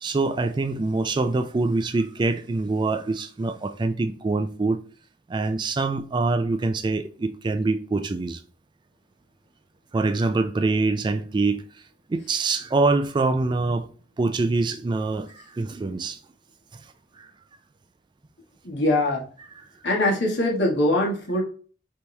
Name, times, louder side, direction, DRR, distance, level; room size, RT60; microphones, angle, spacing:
voice 1, 0.0-4.8 5.3-8.4 9.9-11.6 12.1-13.9 14.2-15.3 15.6-16.2, right 3 dB, 25° right, 0.3 m, -24 dB
voice 2, 18.6-19.2 19.8-21.4, left 1 dB, 75° left, 1.6 m, -22 dB
5.3 x 3.0 x 3.2 m
head